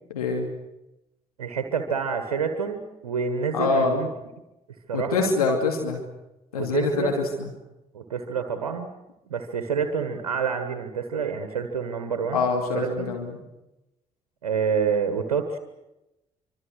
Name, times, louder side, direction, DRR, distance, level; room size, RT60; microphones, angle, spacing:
voice 1, 0.1-0.5 3.5-4.0 4.9-6.0 6.5-7.5 12.3-13.4, left 4 dB, 85° left, 2 dB, 2.6 m, -25 dB
voice 2, 1.4-4.1 4.9-5.3 6.5-7.1 7.9-8.9 9.3-12.4 12.7-13.1 14.4-15.6, right 6 dB, 85° right, 8 dB, 1.4 m, -27 dB
25.5 x 24.5 x 6.6 m, 0.94 s
figure-of-eight pair, 45°, 19 cm